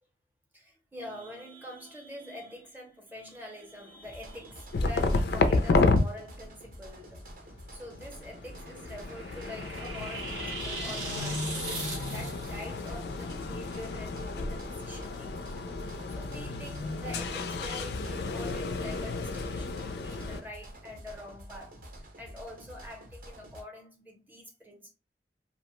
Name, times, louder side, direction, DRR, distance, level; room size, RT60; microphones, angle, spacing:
voice 1, 0.5-7.3 7.7-24.9, left 1 dB, 10° right, 0.7 m, -46 dB
sound 1, 4.0-23.6, equal, 50° right, 0.6 m, -48 dB
sound 2, 4.7-6.0 7.7-20.4, left 3 dB, 60° left, 0.4 m, -31 dB
sound 3, 8.5-12.7, right 3 dB, 90° right, 1.0 m, -39 dB
2.7 x 2.1 x 3.0 m
head